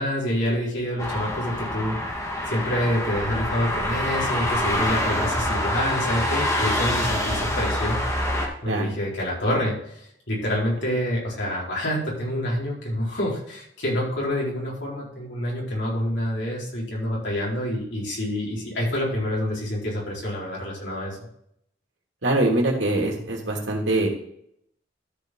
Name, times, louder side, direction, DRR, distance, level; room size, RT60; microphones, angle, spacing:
voice 1, 0.0-2.0 2.5-8.0 8.6-10.0 10.3-21.3, left 1 dB, 70° left, -5 dB, 4.4 m, -27 dB
sound 1, 1.0-8.5, left 1 dB, 15° left, 1.7 m, -26 dB
voice 2, 22.2-24.1, right 1 dB, 75° right, 0 dB, 2.6 m, -23 dB
13.0 x 5.7 x 3.8 m, 0.71 s
head